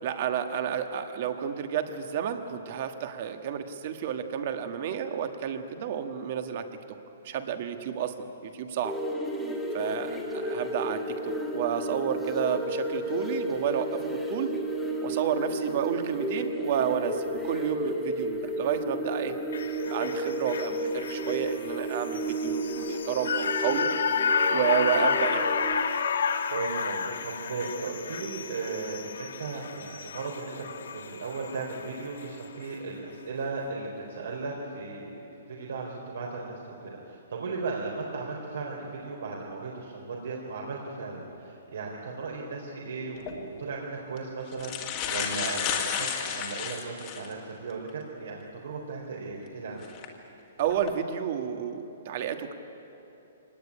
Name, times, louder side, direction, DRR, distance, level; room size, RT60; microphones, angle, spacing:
voice 1, 0.0-6.6 7.2-8.1 8.4-9.0 9.7-14.5 15.0-19.3 19.8-23.9 24.5-25.5 50.6-52.5, right 8 dB, 35° right, 7 dB, 1.5 m, -31 dB
sound 1, 8.8-25.8, right 1 dB, ahead, 1.7 m, -32 dB
voice 2, 10.2-10.5 26.5-49.8, right 4 dB, 70° right, -2 dB, 3.9 m, -36 dB
sound 2, 19.5-31.9 32.2-32.3, left 6 dB, 70° left, 1.5 m, -31 dB
sound 3, 43.2-43.3 44.2-44.3 44.5-47.3 47.9-48.0 49.8-50.1 50.7-50.9, left 8 dB, 20° left, 1.9 m, -32 dB
24.5 x 18.5 x 10.0 m, 3.0 s
hypercardioid pair, 180°, 0 cm